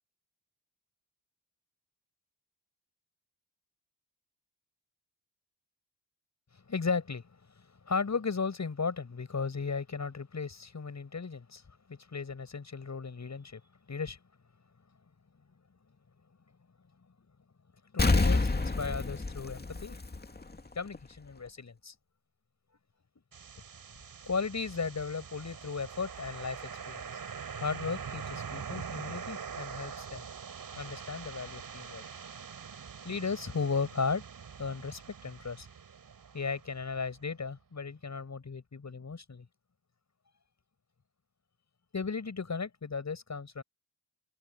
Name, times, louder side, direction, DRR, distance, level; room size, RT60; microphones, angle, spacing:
voice 1, 6.7-7.2 7.6-11.6 11.9-13.6 13.9-14.2 17.9-19.9 20.7-21.9 24.2-27.1 27.5-30.3 30.7-32.0 33.0-34.2 34.6-35.7 36.3-39.4 41.9-43.6, left 5 dB, 40° left, 6.8 m, -35 dB
Explosion, 18.0-20.6 20.9-21.0, left 3 dB, 20° left, 2.6 m, -28 dB
sound 1, 23.3-37.2, right 6 dB, 50° right, 5.1 m, -44 dB
open air
supercardioid pair, 55°, 43 cm